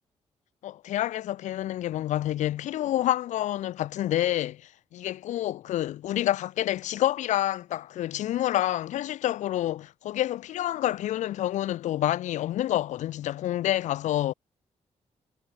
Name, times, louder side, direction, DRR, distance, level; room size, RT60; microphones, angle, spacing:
voice 1, 0.6-14.3, left 13 dB, 85° left, 0.5 m, -28 dB
cardioid pair, 100°, 12 cm